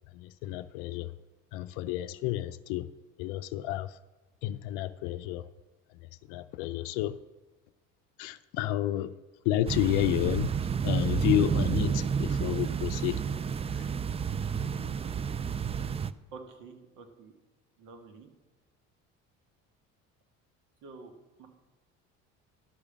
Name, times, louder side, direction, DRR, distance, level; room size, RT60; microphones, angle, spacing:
voice 1, 0.1-1.1 1.5-2.9 3.2-4.0 4.4-5.5 5.9-6.0 6.3-7.2 8.2-9.1 9.4-10.6 10.8-13.3 13.7-13.9, left 13 dB, 70° left, 0.5 m, -30 dB
sound 1, 9.7-16.1, right 7 dB, 20° right, 0.3 m, -30 dB
voice 2, 16.3-17.3 17.8-18.3 20.8-21.1 21.4-21.5, right 4 dB, 60° right, 1.8 m, -48 dB
11.5 x 5.0 x 7.3 m
supercardioid pair, 75°, 34 cm